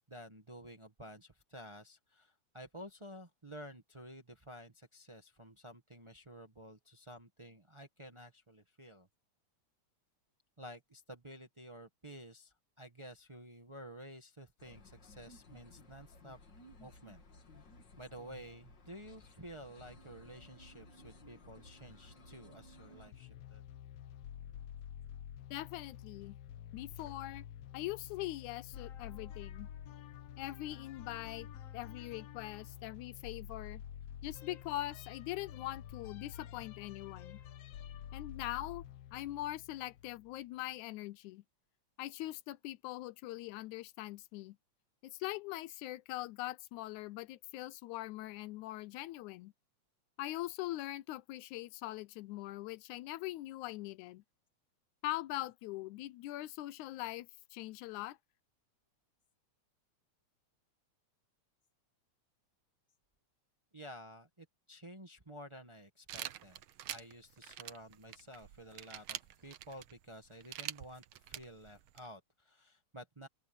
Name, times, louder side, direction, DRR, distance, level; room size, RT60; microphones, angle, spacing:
voice 1, 0.0-9.1 10.6-16.4 16.8-17.2 18.0-23.6 63.7-66.6 66.9-73.3, equal, 45° right, 0.3 m, -52 dB
sound 1, 14.6-23.1, left 2 dB, 40° left, 2.7 m, -57 dB
sound 2, 23.1-40.4, left 10 dB, 65° left, 1.8 m, -49 dB
voice 2, 25.5-26.4 26.7-27.5 27.7-29.7 30.4-31.5 31.7-33.8 34.2-37.4 38.1-38.8 39.1-41.4 42.0-44.6 45.0-49.5 50.2-54.2 55.0-58.2, left 16 dB, 80° left, 2.0 m, -42 dB
sound 3, 66.1-72.1, right 12 dB, 90° right, 1.1 m, -46 dB
open air
omnidirectional pair, 3.5 m